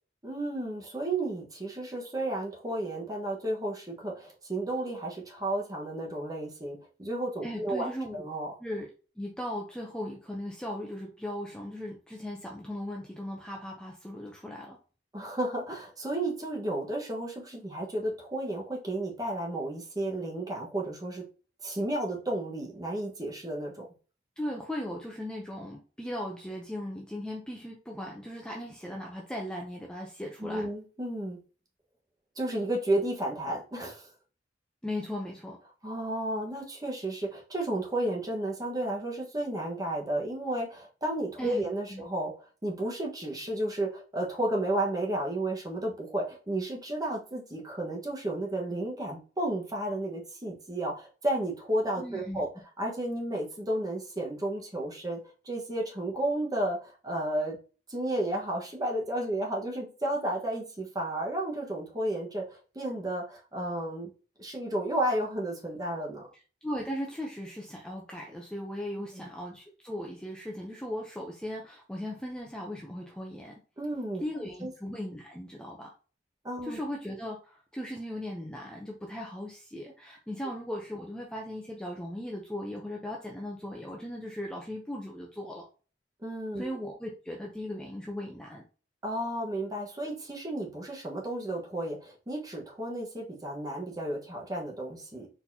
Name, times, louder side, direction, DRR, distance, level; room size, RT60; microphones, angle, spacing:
voice 1, 0.2-8.5 15.1-21.2 21.6-23.9 30.4-31.4 32.4-34.1 35.8-42.3 42.6-52.5 52.8-55.2 55.4-57.6 57.9-64.1 64.4-66.3 69.0-69.3 73.8-74.2 74.6-74.7 76.4-76.8 86.2-86.8 89.0-95.3, right 1 dB, 20° right, -2 dB, 1.3 m, -32 dB
voice 2, 7.4-8.2 8.6-8.9 9.2-14.8 24.4-30.7 34.8-35.6 41.4-41.6 41.9-42.0 52.0-52.4 66.6-73.5 74.2-75.9 76.6-85.6 86.6-88.6, left 1 dB, 5° left, -1 dB, 0.6 m, -38 dB
4.2 x 4.2 x 2.8 m, 0.36 s
head